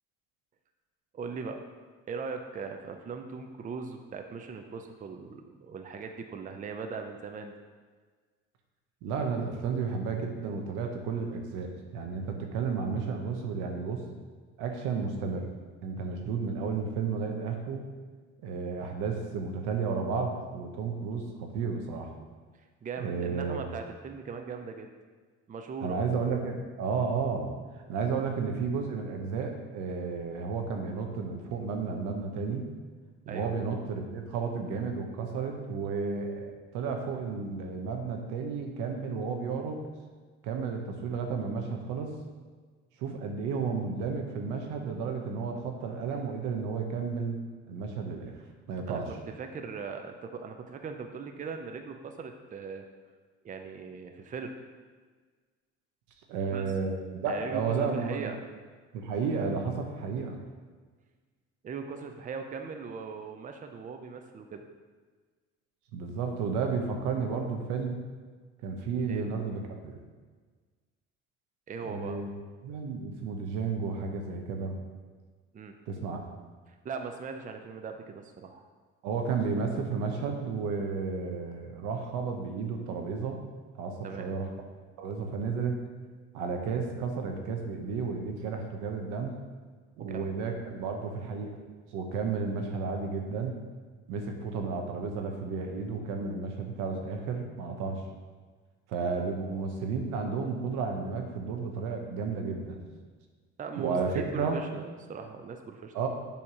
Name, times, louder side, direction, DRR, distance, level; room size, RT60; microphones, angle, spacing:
voice 1, 1.1-1.6 2.1-7.5 22.8-24.9 25.5-26.0 33.3-33.5 48.9-52.8 53.4-54.5 56.5-56.6 57.2-58.4 61.6-64.6 69.1-69.3 71.7-72.2 75.5-75.7 76.7-78.6 84.0-84.3 90.0-90.3 103.6-106.1, right 5 dB, 25° right, 5 dB, 0.5 m, -39 dB
voice 2, 9.0-14.0 14.6-15.5 15.8-17.8 18.4-22.1 23.0-23.6 25.8-27.5 27.9-32.7 33.3-39.8 40.4-42.2 43.0-47.4 47.7-48.3 48.7-49.2 56.3-57.0 57.2-58.4 58.9-60.4 65.9-68.0 68.6-70.0 71.8-72.3 72.6-74.8 75.9-76.2 79.0-83.4 83.7-84.5 85.0-85.8 86.3-89.4 90.0-91.5 91.9-93.6 94.1-98.0 98.9-102.8 103.8-104.6 105.9-106.1, right 5 dB, 90° right, 3 dB, 0.9 m, -32 dB
7.0 x 2.9 x 4.9 m, 1.5 s
cardioid pair, 105°, 30 cm